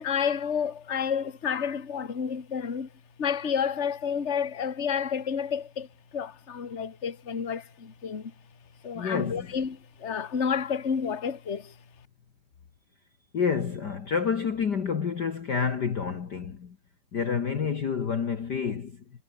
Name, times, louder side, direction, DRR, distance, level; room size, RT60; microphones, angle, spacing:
voice 1, 0.0-2.9 3.2-5.9 6.1-8.3 8.8-11.7, left 7 dB, 35° left, 1.1 m, -30 dB
voice 2, 8.9-9.5 13.3-16.8 17.1-19.0, left 6 dB, 65° left, 1.0 m, -29 dB
omnidirectional pair, 4.5 m